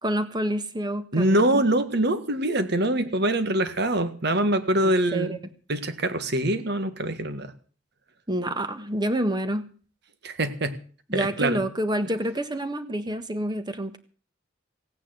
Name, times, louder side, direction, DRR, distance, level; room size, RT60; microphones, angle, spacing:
voice 1, 0.0-1.6 5.1-5.4 8.3-9.7 11.1-14.0, right 1 dB, 20° right, 10 dB, 1.6 m, -28 dB
voice 2, 1.1-5.4 5.7-7.5 10.2-10.8 11.1-11.6, right 1 dB, 60° right, 10 dB, 1.8 m, -24 dB
16.5 x 9.4 x 7.8 m, 0.42 s
head